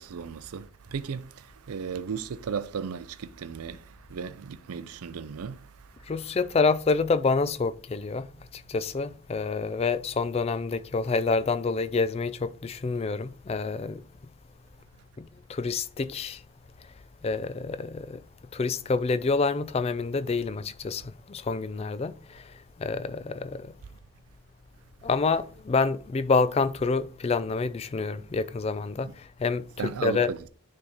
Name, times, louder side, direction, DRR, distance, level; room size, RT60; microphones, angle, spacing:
voice 1, 0.0-6.1 29.0-29.1 29.8-30.4, right 6 dB, 80° right, 0.5 m, -36 dB
voice 2, 6.1-8.3 8.5-14.0 15.2-16.4 17.2-18.2 18.5-23.7 25.0-30.3, left 4 dB, 30° left, 0.3 m, -28 dB
9.9 x 3.6 x 4.0 m
head